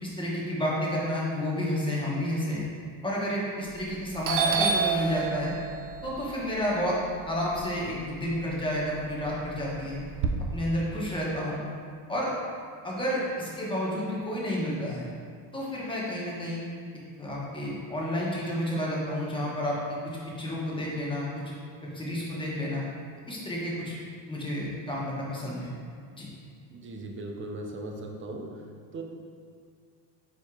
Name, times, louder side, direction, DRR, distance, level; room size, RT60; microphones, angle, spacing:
voice 1, 0.0-2.6 3.0-5.5 6.0-7.0 7.3-10.0 10.5-11.6 12.1-12.3 12.8-15.0 15.5-16.6 17.2-19.8 20.0-21.3 21.9-22.8 23.3-24.0 24.3-25.7 26.1-26.3, equal, 10° left, -6 dB, 1.0 m, -30 dB
Doorbell, 3.7-4.0 4.2-8.4 8.8-10.3, right 6 dB, 70° right, 0.6 m, -30 dB
voice 2, 26.7-28.7 28.9-29.0, right 2 dB, 25° right, 2 dB, 0.5 m, -38 dB
4.8 x 4.2 x 2.4 m, 2.2 s
cardioid pair, 105°, 50 cm